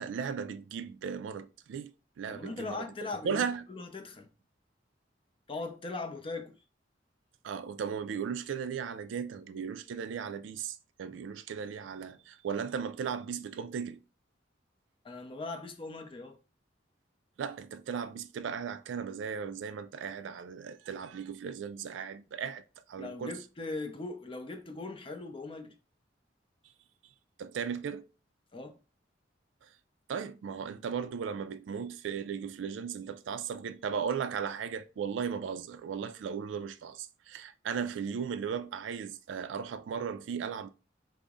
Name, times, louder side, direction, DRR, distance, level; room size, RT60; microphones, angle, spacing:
voice 1, 0.0-1.9 2.2-2.9 3.2-3.6 7.4-14.0 17.4-22.6 22.9-23.4 27.4-28.1 29.6-29.7 30.1-40.7, right 7 dB, 85° right, 0.3 m, -36 dB
voice 2, 2.3-4.3 5.5-6.6 15.0-16.4 23.0-25.7 28.5-28.8, left 3 dB, 30° left, 0.5 m, -40 dB
3.8 x 2.0 x 3.5 m
head